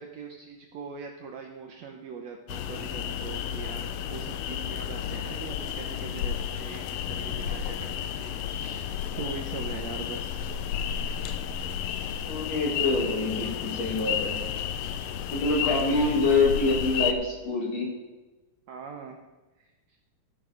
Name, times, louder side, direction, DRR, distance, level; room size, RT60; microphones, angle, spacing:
voice 1, 0.0-8.9 9.2-10.4 18.7-19.2 19.6-19.7, right 5 dB, 75° right, 3 dB, 1.7 m, -41 dB
sound 1, 2.5-17.1, left 9 dB, 90° left, 2.3 m, -32 dB
voice 2, 12.3-14.4 15.3-17.9, left 3 dB, 55° left, -2 dB, 3.3 m, -25 dB
13.5 x 6.2 x 5.0 m, 1.1 s
omnidirectional pair, 3.8 m